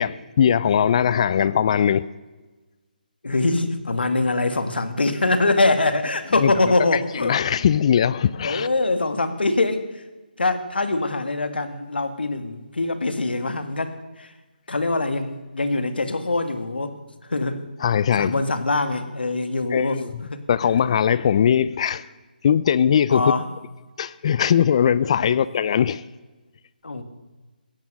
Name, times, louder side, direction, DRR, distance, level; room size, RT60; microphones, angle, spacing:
voice 1, 0.0-2.1 6.4-6.5 7.1-8.7 17.8-18.4 19.7-20.1 20.5-22.1 22.4-23.3 24.0-26.0, left 8 dB, 40° left, 0.5 m, -20 dB
voice 2, 3.2-7.5 8.4-10.0 10.4-14.3 14.7-17.0 17.3-17.7 18.2-20.0 20.3-20.7 23.1-23.5 25.2-25.4 26.8-27.0, left 2 dB, 85° left, 1.9 m, -23 dB
16.5 x 13.5 x 6.4 m
figure-of-eight pair, 155°, 5 cm